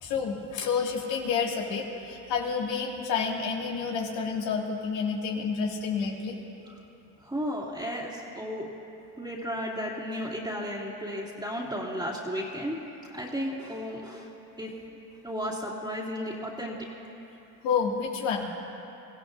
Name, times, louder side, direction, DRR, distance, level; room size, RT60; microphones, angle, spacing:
voice 1, 0.0-6.4 17.6-18.5, left 5 dB, 80° left, -1 dB, 2.4 m, -29 dB
voice 2, 7.2-8.7 9.2-12.8 13.1-14.7 15.2-16.9, equal, 10° right, -7 dB, 2.7 m, -34 dB
28.0 x 15.0 x 2.6 m, 2.9 s
supercardioid pair, 75°, 43 cm